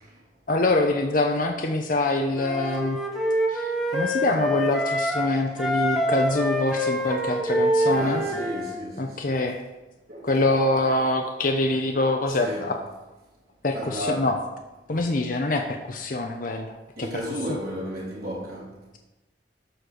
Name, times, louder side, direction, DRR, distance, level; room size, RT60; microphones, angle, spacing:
voice 1, 0.5-3.0 3.5-8.2 9.0-9.6 10.2-12.8 13.6-14.3 14.9-16.7 17.0-17.1, left 2 dB, 50° left, 0.8 m, -25 dB
Wind instrument woodwind instrument, 2.3-5.3 5.6-8.7, equal, ahead, 1.3 m, -25 dB
voice 2, 7.8-9.1 10.1-10.4 12.3-12.8 13.7-14.4 17.0-18.7, equal, 55° right, 3.1 m, -33 dB
12.5 x 4.4 x 6.6 m
head